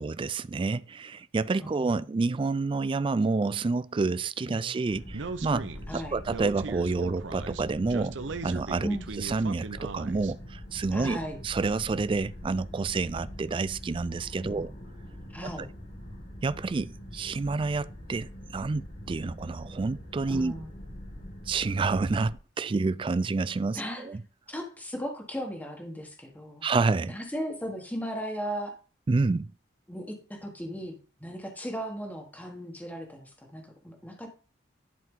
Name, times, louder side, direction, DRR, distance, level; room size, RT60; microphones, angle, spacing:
voice 1, 0.0-8.2 8.4-8.9 9.2-11.2 11.4-14.7 15.4-15.5 16.4-20.5 21.5-24.2 26.6-27.1 29.1-29.5, right 3 dB, 25° right, 0.3 m, -29 dB
voice 2, 1.6-2.0 4.4-4.7 5.9-6.2 8.8-9.1 10.9-11.4 14.4-14.7 15.3-15.7 20.3-20.7 23.7-24.1 24.5-26.6 27.1-28.7 29.9-30.9 31.2-34.3, equal, 10° left, 1.4 m, -36 dB
sound 1, 4.9-22.3, equal, 50° left, 2.2 m, -43 dB
Speech, 5.1-10.3, right 4 dB, 80° right, 0.6 m, -38 dB
11.0 x 4.7 x 3.7 m
head